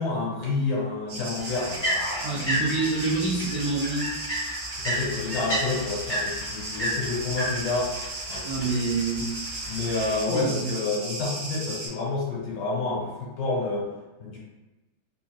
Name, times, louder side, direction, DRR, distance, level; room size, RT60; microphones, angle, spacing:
voice 1, 0.0-2.6 4.8-7.9 8.3-8.7 9.6-13.9 14.2-14.4, left 3 dB, 70° left, -3 dB, 1.5 m, -29 dB
sound 1, 1.1-11.9, right 2 dB, 65° right, 1.4 m, -36 dB
sound 2, 1.4-10.2, equal, 35° left, 0.7 m, -32 dB
voice 2, 2.2-4.1 8.4-9.3 10.3-10.7, right 3 dB, 85° right, -9 dB, 0.6 m, -27 dB
3.4 x 2.5 x 2.3 m, 1.1 s
omnidirectional pair, 2.2 m